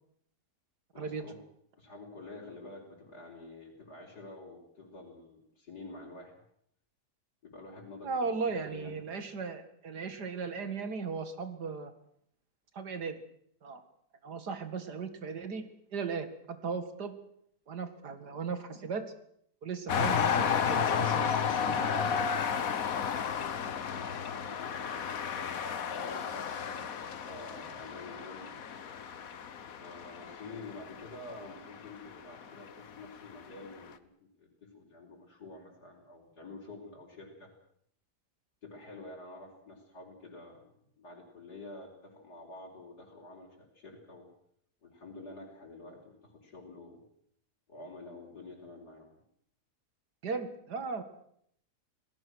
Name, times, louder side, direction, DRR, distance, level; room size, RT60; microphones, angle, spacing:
voice 1, 0.9-1.4 1.7-6.4 7.4-8.3 8.6-9.0 23.1-23.4 24.5-25.6 25.9-28.6 29.6-37.5 38.6-44.3 44.8-47.0 47.7-49.1, left 2 dB, 80° left, -6 dB, 4.9 m, -48 dB
voice 2, 8.0-11.9 12.7-13.2 13.6-13.8 14.2-15.6 15.9-17.1 17.7-19.1 19.6-22.1 50.2-51.0, right 5 dB, 85° right, 9 dB, 2.5 m, -37 dB
sound 1, 19.9-32.7 33.4-33.5, left 7 dB, 60° left, 1.5 m, -33 dB
28.5 x 18.5 x 6.3 m, 0.69 s
omnidirectional pair, 1.7 m